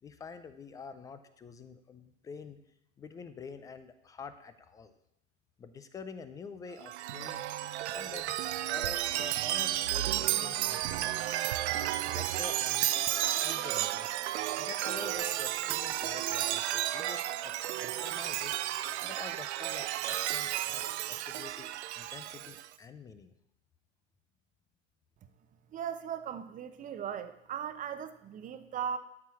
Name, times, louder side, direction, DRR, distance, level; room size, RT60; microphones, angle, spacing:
voice 1, 0.0-2.6 3.0-5.0 5.6-7.5 7.9-11.4 12.0-12.9 13.2-14.1 14.5-18.6 19.0-23.3, left 5 dB, 10° left, 11 dB, 0.4 m, -47 dB
Chime, 6.8-22.7, right 13 dB, 60° right, 0.7 m, -32 dB
voice 2, 25.7-29.0, right 8 dB, 20° right, 10 dB, 0.9 m, -38 dB
12.5 x 4.4 x 8.5 m, 0.78 s
hypercardioid pair, 120°, 39 cm